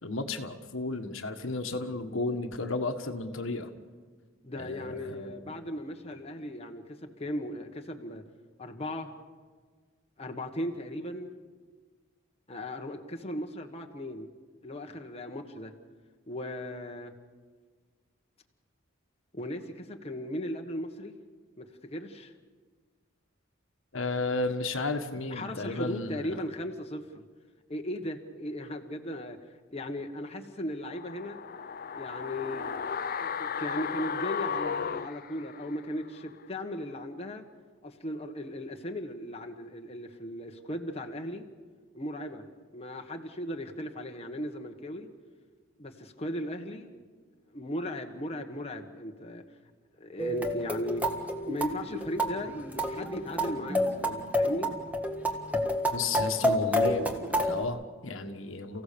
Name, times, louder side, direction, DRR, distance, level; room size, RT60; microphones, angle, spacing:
voice 1, 0.0-3.7 4.5-5.5 23.9-26.4 55.9-58.8, left 3 dB, 75° left, 6 dB, 1.5 m, -33 dB
voice 2, 4.4-8.2 8.6-9.1 10.2-11.3 12.5-14.3 14.6-15.7 16.3-17.1 19.3-21.2 21.6-22.3 25.3-27.2 27.7-29.4 29.7-31.4 31.9-32.7 33.2-37.4 37.8-41.5 41.9-42.4 42.7-45.1 45.8-46.9 47.5-49.4 50.0-51.0 51.5-54.7, left 1 dB, 30° left, 3 dB, 1.4 m, -37 dB
sound 1, 30.8-36.0 36.3-36.4, left 6 dB, 45° left, 0.6 m, -35 dB
sound 2, 50.2-57.6, equal, 10° right, 1.7 m, -29 dB
29.5 x 16.0 x 6.9 m, 1.5 s
head